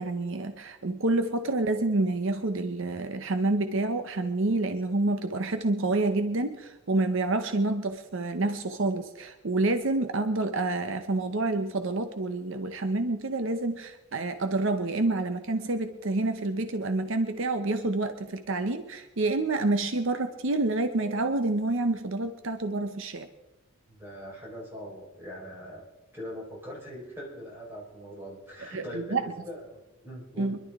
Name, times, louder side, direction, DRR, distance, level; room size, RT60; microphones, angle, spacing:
voice 1, 0.0-23.3 28.7-29.3 30.4-30.6, right 2 dB, 60° right, 8 dB, 0.8 m, -28 dB
voice 2, 23.9-25.9 26.1-30.6, equal, 10° right, -4 dB, 4.4 m, -41 dB
25.0 x 11.5 x 3.6 m, 1.0 s
head